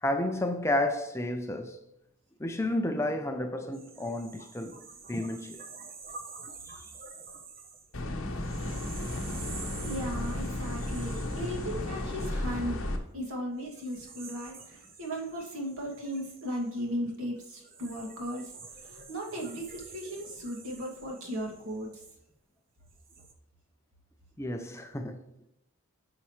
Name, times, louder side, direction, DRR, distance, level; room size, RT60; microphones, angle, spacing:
voice 1, 0.0-1.8 2.4-4.8 5.1-5.6 6.7-6.9 24.4-25.3, left 1 dB, 10° left, 0.5 m, -31 dB
sound 1, 3.7-12.9 13.6-22.3 22.8-23.3, right 4 dB, 40° right, 1.0 m, -48 dB
sound 2, 7.9-13.0, left 1 dB, 60° left, 1.2 m, -34 dB
voice 2, 9.8-12.8 13.1-18.5 18.8-21.9, equal, 75° right, 2.3 m, -36 dB
9.5 x 5.7 x 3.2 m
head